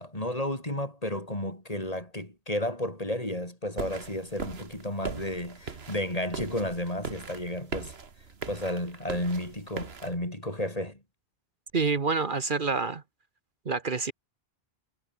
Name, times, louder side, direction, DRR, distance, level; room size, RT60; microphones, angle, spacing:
voice 1, 0.0-7.9 8.5-11.0, left 1 dB, 35° left, 5.6 m, -32 dB
sound 1, 3.8-10.1, right 5 dB, 70° right, 1.9 m, -40 dB
voice 2, 11.7-13.0 13.6-14.1, right 4 dB, 50° right, 1.3 m, -27 dB
omnidirectional pair, 1.1 m